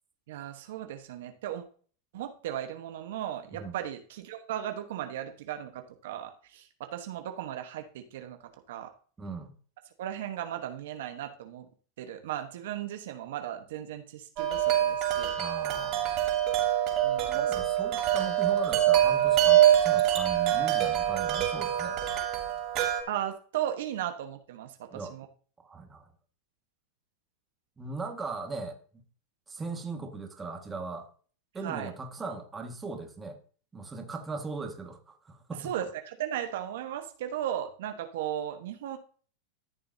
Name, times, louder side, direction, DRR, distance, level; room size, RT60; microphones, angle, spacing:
voice 1, 0.3-1.6 2.1-8.4 8.7-8.9 10.0-11.7 12.0-15.3 17.0-17.5 23.1-25.3 31.6-31.9 35.6-39.0, right 11 dB, 75° right, 7 dB, 1.1 m, -36 dB
voice 2, 9.2-9.5 15.4-16.2 17.3-22.0 24.9-25.1 25.6-26.1 27.8-28.8 29.5-31.1 31.5-33.4 33.7-35.7, right 4 dB, 15° right, 4 dB, 1.7 m, -38 dB
Wind chime, 14.4-23.0, right 11 dB, 45° right, 3.2 m, -25 dB
14.0 x 6.8 x 2.7 m, 0.42 s
hypercardioid pair, 115°, 0 cm